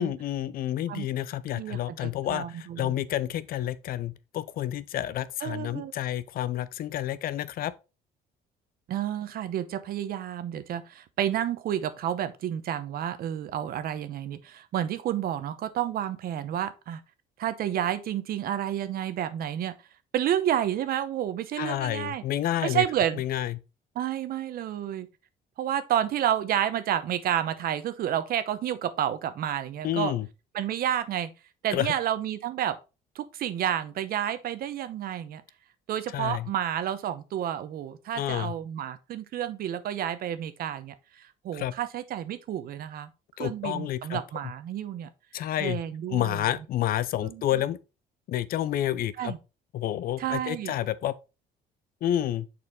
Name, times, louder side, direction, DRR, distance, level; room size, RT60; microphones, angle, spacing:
voice 1, 0.0-7.7 21.6-22.8 23.2-23.6 29.8-30.3 31.7-31.9 36.1-36.5 38.2-38.5 41.5-41.7 43.4-44.2 45.3-45.8 46.1-47.8 48.3-49.3 49.7-51.1 52.0-52.5, left 12 dB, 60° left, 0.5 m, -29 dB
voice 2, 1.5-3.0 5.4-5.9 8.9-17.0 17.4-19.7 20.1-22.2 22.6-23.2 24.0-25.1 25.6-30.1 30.5-31.3 31.6-32.8 33.2-35.4 35.9-40.9 41.4-43.1 43.4-45.1 45.6-46.5 47.2-47.4 49.2-49.4 50.2-50.7, right 10 dB, 60° right, 0.8 m, -30 dB
6.6 x 4.3 x 3.6 m
cardioid pair, 110°, 17 cm